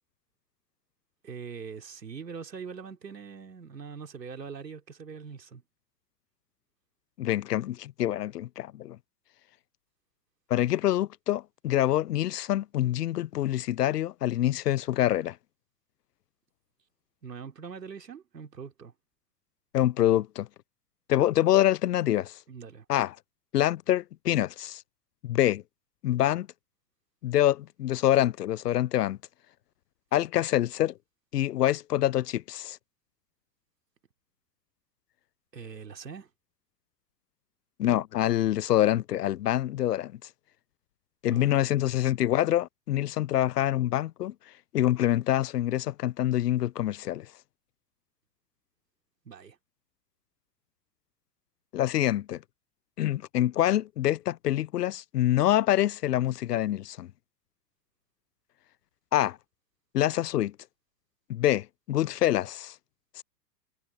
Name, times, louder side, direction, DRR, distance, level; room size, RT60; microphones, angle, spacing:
voice 1, 1.2-5.6 17.2-18.9 22.5-22.8 35.5-36.3 41.3-41.8 49.2-49.6, right 6 dB, 75° right, 3.4 m, -42 dB
voice 2, 7.2-9.0 10.5-15.4 19.7-20.5 21.1-22.4 22.9-23.1 23.5-24.8 25.2-25.6 26.0-26.5 27.2-29.2 30.1-30.9 31.3-32.8 37.8-40.1 41.2-44.3 44.7-47.3 51.7-52.4 53.0-57.1 59.1-59.4 59.9-60.5 61.3-62.7 63.2-63.3, left 13 dB, 70° left, 0.6 m, -26 dB
figure-of-eight pair, 95°, 50 cm